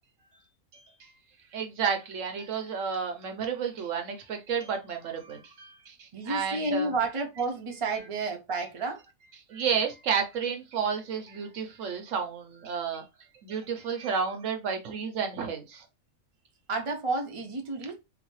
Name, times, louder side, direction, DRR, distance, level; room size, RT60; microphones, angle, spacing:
voice 1, 0.7-1.1 1.5-6.9 9.5-13.0 13.4-15.8, right 6 dB, 70° right, 1.0 m, -31 dB
voice 2, 6.1-9.0 16.7-18.0, right 3 dB, 35° right, 0.5 m, -31 dB
3.9 x 2.2 x 3.1 m
omnidirectional pair, 1.4 m